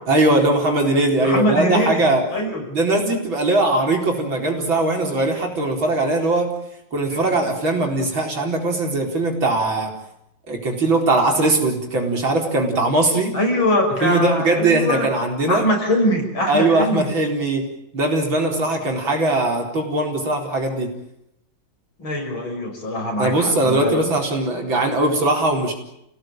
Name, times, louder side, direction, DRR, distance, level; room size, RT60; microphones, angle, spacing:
voice 1, 0.1-2.2 2.7-6.5 6.9-9.9 10.5-13.4 14.0-15.6 16.5-17.6 17.9-20.9 23.2-25.7, right 2 dB, 65° right, 2 dB, 5.0 m, -20 dB
voice 2, 1.2-2.7 13.3-15.1 15.5-17.1 22.0-24.1, left 1 dB, 70° left, 2 dB, 6.9 m, -22 dB
28.5 x 17.5 x 9.0 m, 0.83 s
omnidirectional pair, 2.3 m